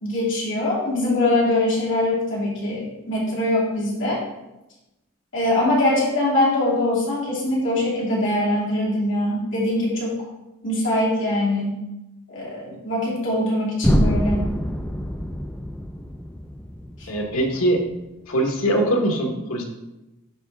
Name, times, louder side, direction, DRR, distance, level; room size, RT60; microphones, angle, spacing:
voice 1, 0.0-4.2 5.3-10.2 10.6-11.7 12.3-14.4 17.0-17.1, left 1 dB, 60° left, -6 dB, 2.7 m, -22 dB
sound 1, 13.8-17.8, equal, 5° left, 0.3 m, -25 dB
voice 2, 17.1-17.8 18.3-19.6, right 1 dB, 85° left, 2 dB, 1.3 m, -22 dB
10.5 x 4.0 x 3.6 m, 0.98 s
head